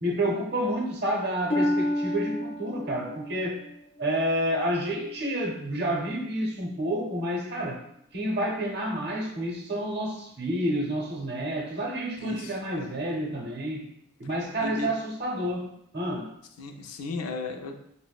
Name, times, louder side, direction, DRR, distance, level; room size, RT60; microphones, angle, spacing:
voice 1, 0.0-3.6 4.0-7.8 8.1-13.9 14.2-16.3, equal, 50° right, 0 dB, 0.7 m, -29 dB
Harp, 1.5-5.2 5.8-6.2 6.8-6.9, left 1 dB, 5° left, 0.4 m, -31 dB
voice 2, 12.2-13.0 14.6-14.9 16.6-17.8, left 3 dB, 70° left, 4 dB, 0.4 m, -35 dB
5.2 x 2.0 x 2.3 m, 0.76 s
head